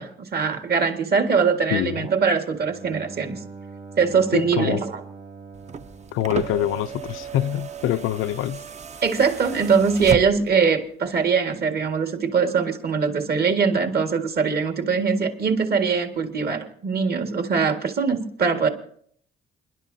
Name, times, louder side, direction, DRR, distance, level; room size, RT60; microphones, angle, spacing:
voice 1, 0.0-3.4 4.0-5.0 9.0-18.7, right 5 dB, 50° right, 1.8 m, -22 dB
voice 2, 1.7-2.0 4.3-4.8 6.1-8.6, left 12 dB, 85° left, 0.5 m, -25 dB
Bowed string instrument, 2.5-7.3, right 4 dB, 70° right, 4.9 m, -43 dB
sound 1, 5.5-10.7 11.9-12.0, right 6 dB, 35° right, 0.6 m, -34 dB
28.5 x 11.0 x 2.7 m
cardioid pair, 90°, 20 cm